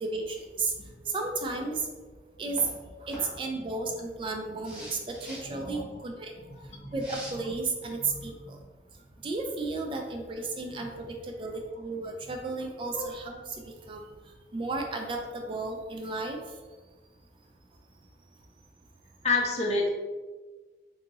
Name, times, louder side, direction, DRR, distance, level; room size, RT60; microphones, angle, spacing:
voice 1, 0.0-0.7 1.0-1.9 2.4-2.6 3.0-6.6 6.8-8.6 9.2-14.0 14.5-16.4, right 3 dB, 30° right, 2 dB, 0.3 m, -33 dB
sound 1, 2.5-2.7 3.1-3.2 4.6-5.5 7.0-7.3, equal, 5° right, 0.8 m, -43 dB
voice 2, 3.1-3.9 5.6-6.0 6.7-6.9 12.9-13.2 19.2-19.9, left 3 dB, 40° left, 0 dB, 0.5 m, -30 dB
2.7 x 2.6 x 3.9 m, 1.3 s
head